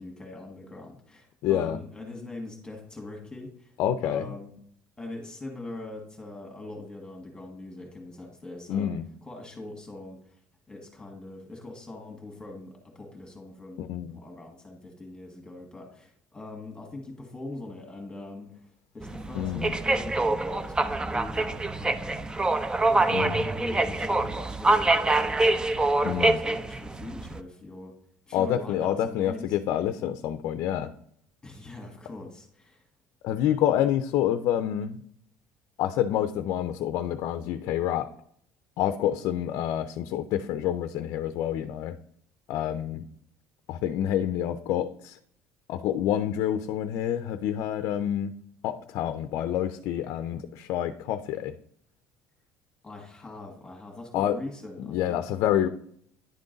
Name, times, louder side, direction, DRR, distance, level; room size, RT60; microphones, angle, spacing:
voice 1, 0.0-3.7 4.0-4.5 5.0-10.4 10.7-22.3 22.9-27.9 28.3-29.6 31.4-32.8 52.8-55.2, left 2 dB, 15° left, 1 dB, 1.7 m, -42 dB
voice 2, 1.4-1.8 3.8-4.3 8.7-9.0 13.8-14.1 19.3-19.8 23.1-23.5 26.0-26.4 28.3-30.9 33.2-35.0 35.8-38.1 38.8-42.0 42.5-43.1 43.7-45.2 45.7-48.3 48.6-51.6 54.1-54.4 54.8-55.7, left 10 dB, 70° left, 10 dB, 0.5 m, -28 dB
sound 1, 19.0-27.4, right 2 dB, 15° right, 0.4 m, -25 dB
10.0 x 3.8 x 3.9 m, 0.65 s
supercardioid pair, 100°, 6 cm